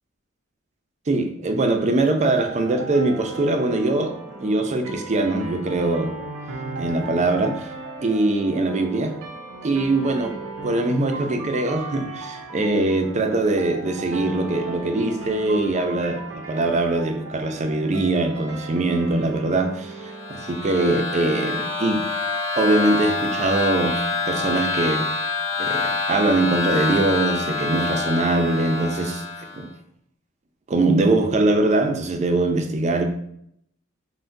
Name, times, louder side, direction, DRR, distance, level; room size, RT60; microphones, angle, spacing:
voice 1, 1.1-4.1 4.4-6.1 6.8-7.6 8.0-9.2 9.6-10.4 10.6-22.0 22.6-25.1 25.6-29.2 29.5-29.7 30.7-33.0, right 2 dB, 35° right, 5 dB, 0.4 m, -22 dB
sound 1, 2.4-21.3, right 2 dB, 90° right, 0.7 m, -36 dB
sound 2, 20.0-29.6, left 3 dB, 30° left, 1.5 m, -26 dB
5.6 x 2.1 x 2.6 m, 0.71 s
head